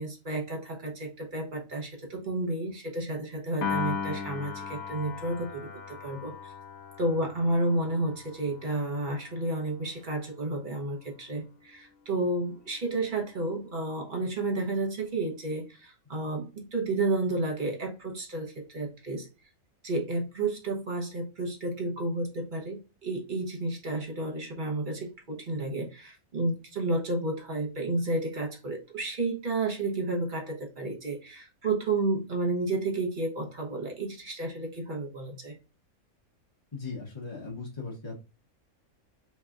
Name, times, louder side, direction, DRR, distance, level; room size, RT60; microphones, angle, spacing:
voice 1, 0.0-6.5 7.0-19.3 19.8-35.6, right 2 dB, 40° right, 1 dB, 1.0 m, -31 dB
Piano, 3.6-10.0, left 6 dB, 75° left, 1.0 m, -38 dB
voice 2, 36.7-38.2, left 4 dB, 25° left, -3 dB, 0.7 m, -38 dB
3.4 x 3.2 x 2.4 m, 0.29 s
omnidirectional pair, 1.5 m